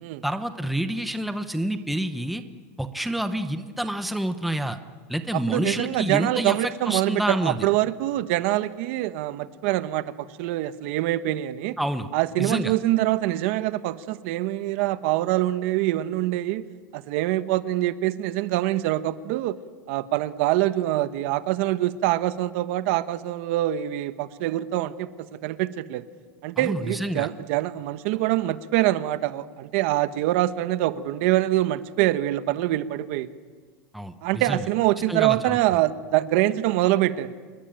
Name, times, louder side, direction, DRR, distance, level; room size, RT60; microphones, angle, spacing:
voice 1, 0.2-2.4 2.8-4.8 5.1-7.7 11.8-12.1 12.4-12.7 26.6-27.3 33.9-34.6 35.1-35.6, right 1 dB, ahead, 8 dB, 0.9 m, -28 dB
voice 2, 5.3-11.8 12.1-16.6 16.9-19.6 19.9-26.0 26.4-33.3 34.2-37.3, right 15 dB, 50° right, 12 dB, 1.1 m, -25 dB
27.5 x 22.0 x 8.9 m, 1.5 s
supercardioid pair, 175°, 9 cm